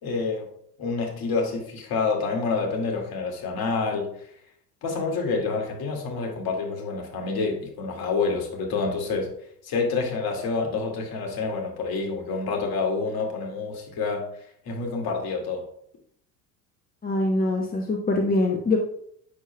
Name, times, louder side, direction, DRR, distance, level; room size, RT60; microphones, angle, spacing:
voice 1, 0.0-0.5 0.8-4.1 4.8-9.3 9.6-14.2 14.7-15.6, left 4 dB, 50° left, 1 dB, 2.2 m, -28 dB
voice 2, 17.0-18.8, left 2 dB, 20° left, 2 dB, 1.0 m, -23 dB
8.4 x 6.5 x 2.2 m, 0.67 s
hypercardioid pair, 70°, 48 cm